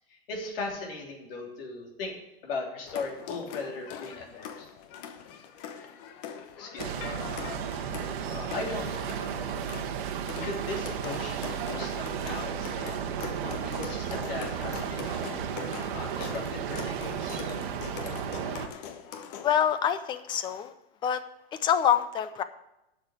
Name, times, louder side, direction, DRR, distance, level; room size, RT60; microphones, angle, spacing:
voice 1, 0.1-2.1 2.4-4.7 6.5-7.1 8.3-9.1 10.1-13.0 13.4-15.1 15.9-17.4, left 3 dB, 65° left, 0 dB, 3.5 m, -38 dB
sound 1, 2.9-19.6, left 7 dB, 40° left, 1.1 m, -42 dB
sound 2, 6.8-18.7, right 8 dB, 55° right, 1.3 m, -34 dB
voice 2, 19.4-20.7 21.0-21.2 21.5-22.4, left 9 dB, 15° left, 12 dB, 0.5 m, -26 dB
8.6 x 7.2 x 8.2 m, 0.90 s
supercardioid pair, 150°, 30 cm